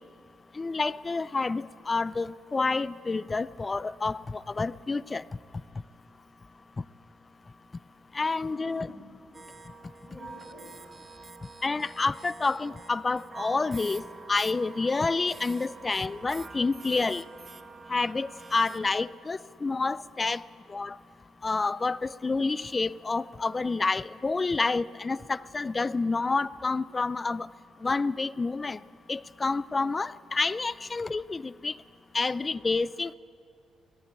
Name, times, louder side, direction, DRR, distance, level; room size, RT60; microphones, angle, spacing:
voice 1, 0.6-5.2 8.1-8.9 11.6-14.0 14.3-17.2 17.9-20.4 20.7-21.0 21.4-27.5 27.8-28.8 29.1-31.7 32.1-33.1, left 3 dB, 25° left, 19 dB, 0.4 m, -28 dB
voice 2, 5.5-5.8 8.5-9.2 10.0-11.2, left 2 dB, 5° left, -6 dB, 6.9 m, -49 dB
sound 1, 9.3-19.0, right 4 dB, 30° right, 1.1 m, -46 dB
18.0 x 17.0 x 8.5 m, 2.4 s
cardioid pair, 90°, 0 cm